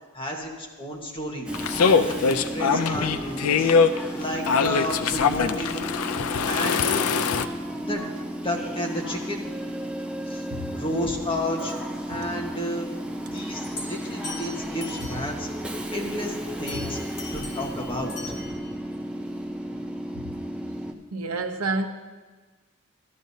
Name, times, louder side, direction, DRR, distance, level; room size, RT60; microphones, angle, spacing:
voice 1, 0.1-3.7 4.1-5.9 6.4-7.1 7.8-8.1 8.4-9.5 10.3-10.4 10.7-11.7 12.1-12.9 13.3-15.5 15.9-18.1, left 1 dB, 25° left, -1 dB, 1.4 m, -32 dB
sound 1, 1.5-7.5, left 5 dB, 70° left, 0.4 m, -22 dB
Train / Subway metro underground, 1.5-20.9, equal, 5° right, 0.6 m, -33 dB
sound 2, 13.6-15.5 16.7-18.7, left 3 dB, 90° left, 2.3 m, -40 dB
voice 2, 21.1-21.9, right 2 dB, 75° right, 6 dB, 0.9 m, -29 dB
13.0 x 12.5 x 2.8 m, 1.4 s
head